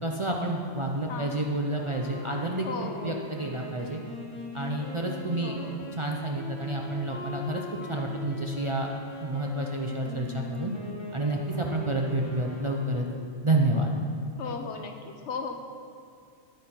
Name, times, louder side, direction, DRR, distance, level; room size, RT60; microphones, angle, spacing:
voice 1, 0.0-4.0 4.5-5.6 6.0-7.6 7.9-8.9 9.2-10.7 11.1-13.1 13.4-13.9, right 1 dB, 35° right, 0 dB, 0.6 m, -29 dB
voice 2, 1.1-1.5 2.6-3.3 5.4-5.9 14.4-15.5, left 5 dB, 70° left, 5 dB, 1.1 m, -37 dB
Wind instrument woodwind instrument, 1.7-13.5, left 1 dB, 25° left, 1.3 m, -41 dB
10.5 x 8.3 x 4.3 m, 2.3 s
omnidirectional pair, 1.2 m